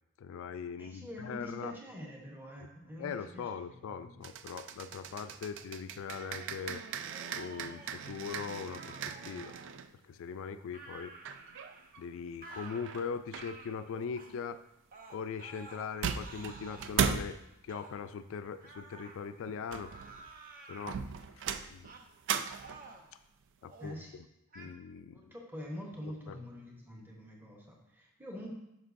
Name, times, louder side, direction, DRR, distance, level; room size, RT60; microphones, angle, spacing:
voice 1, 0.2-1.7 3.0-6.8 7.3-9.0 9.3-9.5 10.0-11.2 12.0-14.6 15.1-19.9 20.7-21.0 21.3-21.9 23.6-24.0 24.6-25.3 26.3-26.4, left 6 dB, 60° left, 10 dB, 0.3 m, -40 dB
voice 2, 0.8-4.3 23.8-24.1 24.6-24.7 25.1-28.5, equal, 10° right, -1 dB, 0.9 m, -45 dB
sound 1, 4.2-9.9 11.2-12.0 12.5-13.6 15.7-15.8 16.0-17.4 19.5-20.3 20.9-22.9, right 7 dB, 55° right, 0.3 m, -38 dB
sound 2, 7.0-8.0 8.6-9.7 10.7-12.0 12.4-12.8 13.4-13.8 14.2-14.3 14.9-15.9 16.2-17.0 17.7-17.9 18.6-19.2 19.7-20.9 21.8-22.1 22.5-23.1 23.6-24.0 24.5-24.7, right 3 dB, 40° right, 0.8 m, -51 dB
9.7 x 5.9 x 2.6 m, 0.86 s
head